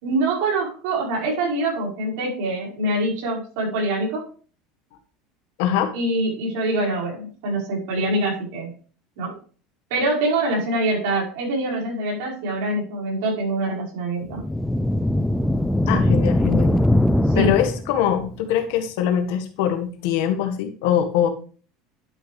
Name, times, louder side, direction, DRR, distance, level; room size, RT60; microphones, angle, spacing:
voice 1, 0.0-4.3 5.9-8.7 9.2-9.3 9.9-14.4 17.3-17.5, right 2 dB, 75° right, -2 dB, 5.2 m, -24 dB
voice 2, 5.6-5.9 15.9-16.7 17.3-21.3, left 9 dB, 70° left, 6 dB, 1.6 m, -22 dB
sound 1, 14.3-18.1, left 1 dB, ahead, 0.3 m, -20 dB
11.0 x 6.6 x 3.4 m, 0.39 s
cardioid pair, 165°, 0 cm